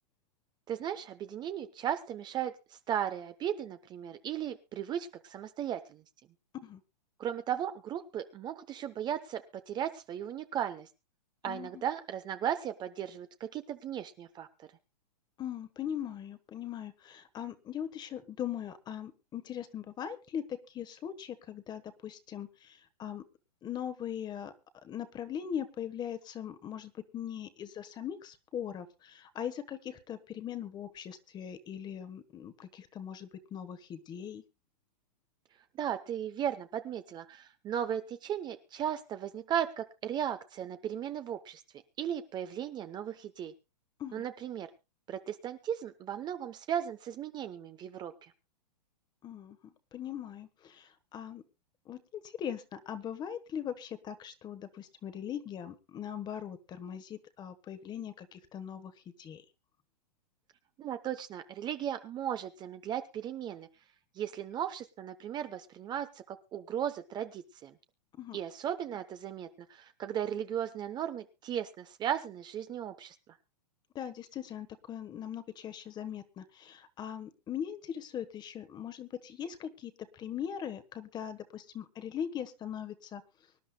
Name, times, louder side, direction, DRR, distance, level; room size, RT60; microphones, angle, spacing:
voice 1, 0.7-6.0 7.2-10.9 11.4-14.5 35.8-41.6 42.0-43.5 44.1-44.7 45.1-48.1 60.8-63.7 64.2-67.7 68.3-73.1, right 9 dB, 20° right, 10 dB, 0.8 m, -36 dB
voice 2, 11.5-11.8 15.4-23.2 23.6-24.5 24.8-34.4 44.0-44.3 49.2-51.4 51.9-58.9 59.2-59.4 68.2-68.4 73.9-83.2, left 9 dB, 20° left, 12 dB, 1.2 m, -40 dB
24.5 x 11.0 x 2.2 m, 0.27 s
hypercardioid pair, 135°, 21 cm